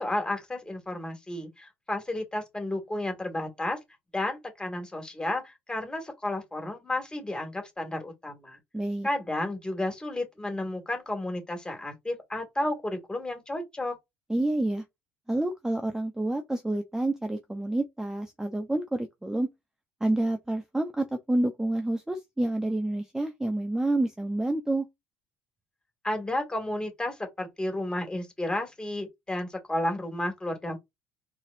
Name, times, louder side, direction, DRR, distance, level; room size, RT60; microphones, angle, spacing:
voice 1, 0.0-3.8 4.1-8.6 9.0-13.9 26.0-30.8, left 1 dB, 15° left, 2.1 m, -32 dB
voice 2, 8.7-9.1 14.3-14.8 15.3-19.5 20.0-24.8, right 1 dB, 10° right, 0.8 m, -28 dB
4.2 x 4.1 x 2.6 m
hypercardioid pair, 60°, 6 cm